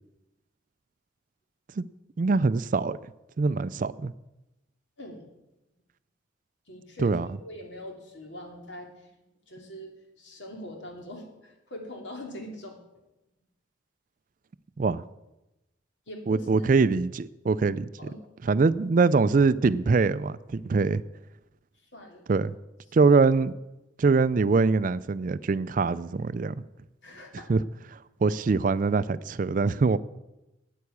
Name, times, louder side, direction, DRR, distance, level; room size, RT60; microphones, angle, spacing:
voice 1, 2.2-3.0 3.4-4.1 7.0-7.3 14.8-15.0 16.3-17.9 18.4-21.0 22.3-22.5 22.9-23.5 24.0-26.6 27.5-27.6 27.9-30.0, right 4 dB, 40° right, 0.4 m, -23 dB
voice 2, 5.0-5.3 6.7-9.1 9.5-12.8 16.1-16.7 18.0-18.2 21.9-22.2 27.0-27.5, left 1 dB, 65° left, 2.6 m, -43 dB
9.4 x 9.2 x 8.5 m
head